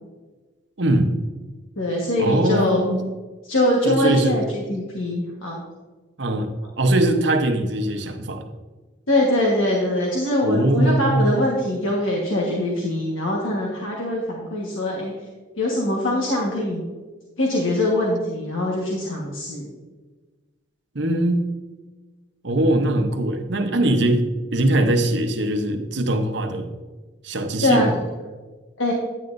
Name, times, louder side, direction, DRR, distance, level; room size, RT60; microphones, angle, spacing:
voice 1, 0.8-1.2 2.2-3.1 3.8-4.4 6.2-8.5 10.4-11.3 20.9-21.4 22.4-26.7 27.2-27.9, right 1 dB, 60° right, 5 dB, 0.9 m, -21 dB
voice 2, 1.8-2.8 3.5-5.6 6.6-6.7 9.1-15.1 15.6-16.8 17.4-19.7 27.6-27.9 28.8-28.9, left 1 dB, 80° left, -3 dB, 1.4 m, -22 dB
10.0 x 9.5 x 2.6 m, 1.3 s
head